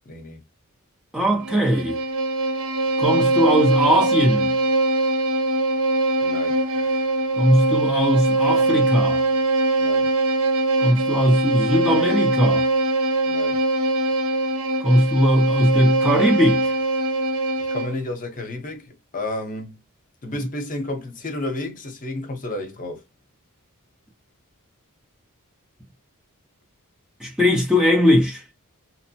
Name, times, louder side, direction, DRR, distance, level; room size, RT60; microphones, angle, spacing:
voice 1, 0.1-0.4 6.2-7.1 9.8-10.1 13.3-13.6 17.6-19.8 20.2-23.0, left 1 dB, 40° left, 0.7 m, -32 dB
voice 2, 1.1-2.0 3.0-4.5 7.4-9.2 10.8-12.7 14.8-16.7 27.2-28.4, equal, 5° right, 0.5 m, -19 dB
Bowed string instrument, 1.4-18.0, right 2 dB, 65° right, 0.5 m, -22 dB
2.9 x 2.0 x 2.7 m
head